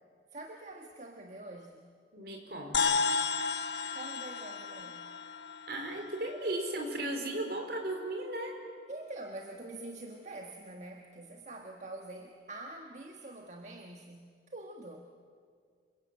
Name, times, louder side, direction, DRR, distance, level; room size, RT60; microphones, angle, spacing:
voice 1, 0.3-1.8 3.9-5.1 8.9-15.0, right 2 dB, 40° right, 3 dB, 1.6 m, -45 dB
voice 2, 2.1-3.0 5.7-8.5, right 1 dB, 60° right, 3 dB, 4.6 m, -36 dB
sound 1, 2.7-7.3, left 5 dB, 75° left, 1.2 m, -34 dB
27.0 x 23.0 x 8.9 m, 2.1 s
head